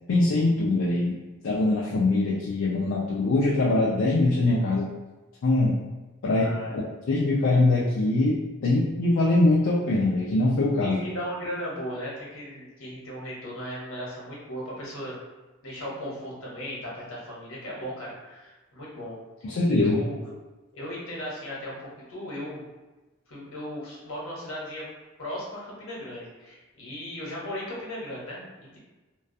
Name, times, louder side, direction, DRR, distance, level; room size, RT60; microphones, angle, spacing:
voice 1, 0.1-1.2 1.4-4.9 5.4-5.8 6.2-6.5 6.7-6.8 7.1-11.0 19.4-20.0, left 2 dB, 70° left, -4 dB, 0.3 m, -22 dB
voice 2, 6.3-6.8 10.8-15.2 15.6-20.2 20.7-22.6 23.3-24.8 25.2-28.8, equal, 85° left, -5 dB, 0.9 m, -37 dB
2.3 x 2.2 x 2.5 m, 1.2 s
head